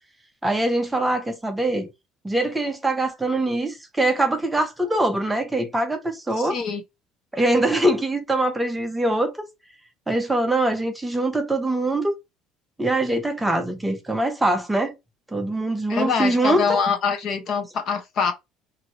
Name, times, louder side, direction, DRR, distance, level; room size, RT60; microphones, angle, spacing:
voice 1, 0.4-1.9 2.2-6.6 7.3-9.3 10.1-12.1 12.8-14.9 15.3-16.8, right 1 dB, 5° right, 0.6 m, -23 dB
voice 2, 6.4-6.8 15.9-18.3, left 6 dB, 45° left, 0.7 m, -24 dB
2.8 x 2.6 x 2.8 m
cardioid pair, 145°, 0 cm